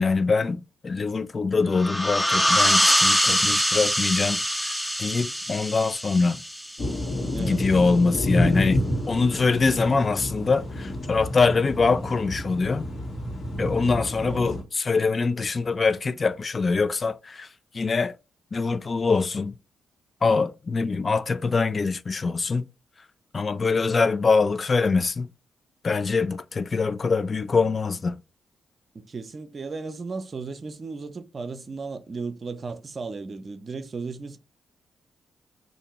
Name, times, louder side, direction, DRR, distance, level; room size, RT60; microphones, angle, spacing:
voice 1, 0.0-4.4 4.7-6.4 7.4-8.8 9.1-12.8 13.6-17.5 17.7-18.2 18.5-19.5 20.2-22.6 23.3-25.3 25.8-28.2, left 4 dB, 45° left, 0.3 m, -24 dB
sound 1, 1.7-7.1, equal, 5° left, 0.6 m, -23 dB
sound 2, 6.8-14.6, left 1 dB, 65° left, 1.3 m, -29 dB
voice 2, 7.3-7.6 14.2-14.5 28.9-34.4, right 4 dB, 50° right, 0.6 m, -35 dB
2.8 x 2.6 x 4.3 m
supercardioid pair, 50°, 0 cm